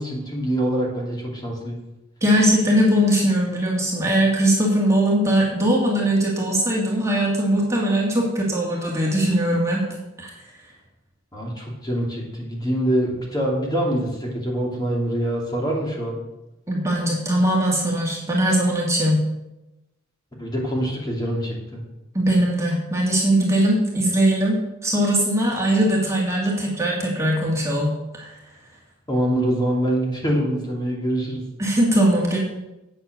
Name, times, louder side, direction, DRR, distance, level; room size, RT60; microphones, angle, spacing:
voice 1, 0.0-1.8 11.3-16.2 20.4-21.8 29.1-31.4, equal, 20° left, -2 dB, 2.6 m, -24 dB
voice 2, 2.2-9.8 10.2-10.3 16.7-19.2 22.1-24.6 24.8-27.9 28.2-28.3 31.6-32.4, right 1 dB, 15° right, -3 dB, 2.1 m, -20 dB
8.6 x 8.0 x 6.6 m, 0.96 s
head